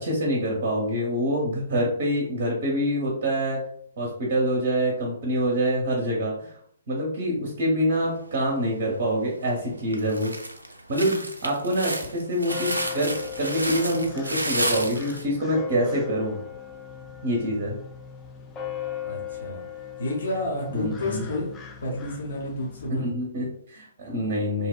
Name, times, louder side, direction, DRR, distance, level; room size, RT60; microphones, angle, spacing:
voice 1, 0.0-3.6 4.0-6.3 6.9-10.3 10.9-16.4 17.2-17.7 20.7-21.2 22.9-24.7, equal, 40° right, -2 dB, 0.6 m, -26 dB
sound 1, 8.3-8.9 9.4-9.5 9.9-15.2, right 1 dB, 85° right, 0.3 m, -31 dB
sound 2, 12.4-22.9, left 9 dB, 15° left, 0.3 m, -39 dB
voice 2, 19.0-19.6 20.0-21.5 21.8-23.1, left 1 dB, 55° left, -1 dB, 0.6 m, -30 dB
2.7 x 2.0 x 2.3 m, 0.65 s
figure-of-eight pair, 125°, 0 cm